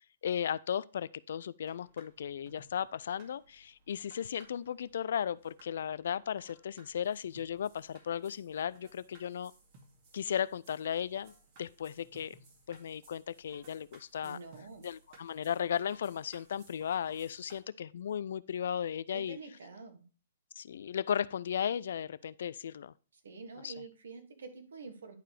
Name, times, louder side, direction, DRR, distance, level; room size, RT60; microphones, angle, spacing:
voice 1, 0.2-9.5 10.1-11.3 11.6-12.4 12.7-14.4 14.8-19.4 20.6-22.9 23.6-23.7, left 8 dB, 65° left, 0.3 m, -35 dB
sound 1, 1.6-17.6, right 3 dB, 45° right, 2.1 m, -61 dB
voice 2, 14.2-14.8 19.1-20.0 23.2-25.1, right 4 dB, 70° right, 1.5 m, -47 dB
10.5 x 4.6 x 3.3 m
figure-of-eight pair, 120°, 0 cm